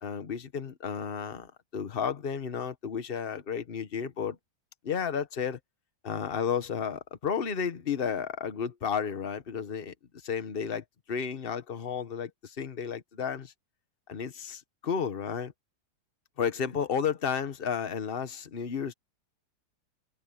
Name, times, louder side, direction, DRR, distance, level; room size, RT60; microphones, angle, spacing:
voice 1, 0.0-4.4 4.8-5.6 6.0-9.9 10.2-13.5 14.1-15.5 16.4-18.9, left 7 dB, 35° left, 1.3 m, -32 dB
omnidirectional pair, 1.8 m